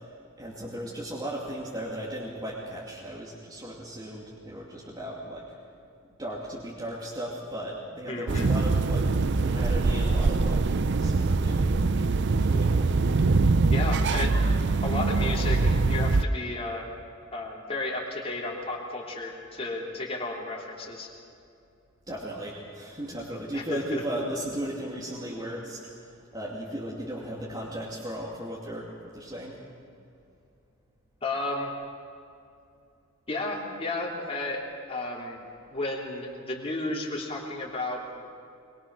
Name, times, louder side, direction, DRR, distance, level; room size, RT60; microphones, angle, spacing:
voice 1, 0.4-5.5 6.2-9.1 9.4-10.6 11.0-12.9 22.1-28.9 29.1-29.6, right 1 dB, 20° right, -5 dB, 2.6 m, -36 dB
voice 2, 8.0-8.5 13.7-14.4 14.8-16.9 17.3-21.1 23.5-24.2 31.2-31.7 33.3-34.6 34.9-35.4 35.7-38.3, left 2 dB, 30° left, -2 dB, 3.3 m, -33 dB
sound 1, 8.3-16.2, right 3 dB, 55° right, 0.6 m, -23 dB
22.5 x 22.5 x 6.3 m, 2.6 s
head